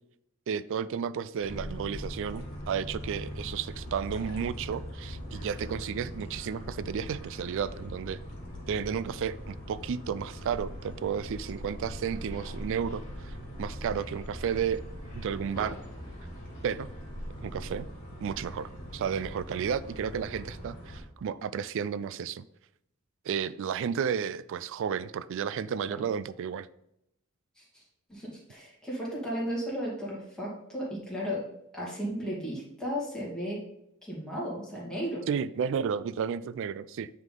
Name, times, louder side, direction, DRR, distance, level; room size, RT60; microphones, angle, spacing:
voice 1, 0.5-8.2 8.7-14.8 15.1-15.7 16.6-16.9 17.4-17.9 18.2-22.4 23.3-26.7 35.3-37.1, right 7 dB, 65° right, 17 dB, 0.3 m, -32 dB
sound 1, 1.4-21.0, equal, 45° left, 2.1 m, -41 dB
voice 2, 28.1-31.4 31.7-33.6 34.1-35.2, equal, 5° left, -6 dB, 2.2 m, -34 dB
9.0 x 3.7 x 3.8 m, 0.80 s
head